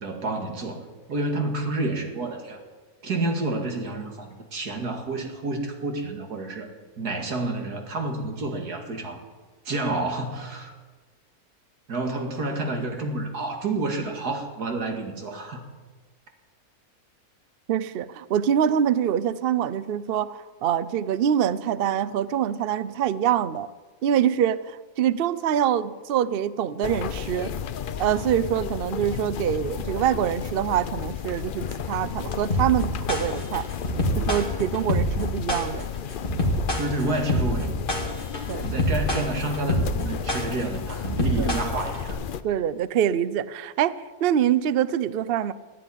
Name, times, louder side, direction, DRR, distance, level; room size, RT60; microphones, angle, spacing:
voice 1, 0.0-2.6 3.0-6.7 7.0-9.2 9.7-10.7 11.9-15.6 36.8-37.7 38.6-42.2, right 2 dB, 80° right, 4 dB, 2.6 m, -29 dB
voice 2, 17.7-23.7 24.0-27.5 28.0-33.6 34.2-35.9 38.5-38.7 41.4-41.5 42.4-43.9 44.2-45.5, right 9 dB, 65° right, 16 dB, 0.5 m, -25 dB
sound 1, 26.8-42.4, left 8 dB, 90° left, 0.4 m, -33 dB
sound 2, 32.5-42.1, equal, 35° left, 2.4 m, -26 dB
14.0 x 10.0 x 9.9 m, 1.3 s
omnidirectional pair, 1.6 m